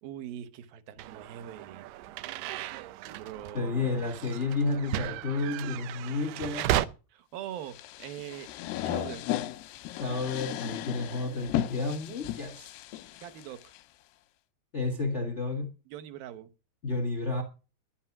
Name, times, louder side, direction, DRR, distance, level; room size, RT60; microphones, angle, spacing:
voice 1, 0.0-1.9 3.1-4.3 7.1-8.5 8.8-9.3 13.2-13.7 15.9-16.5, right 11 dB, 70° right, 2.7 m, -42 dB
creaking door, 1.0-6.9, right 13 dB, 90° right, 2.8 m, -35 dB
voice 2, 3.5-6.7 9.9-12.7 14.7-15.7 16.8-17.4, left 3 dB, 45° left, 0.9 m, -31 dB
sound 1, 7.7-13.8, left 14 dB, 90° left, 2.8 m, -35 dB
11.5 x 11.0 x 6.0 m
omnidirectional pair, 4.5 m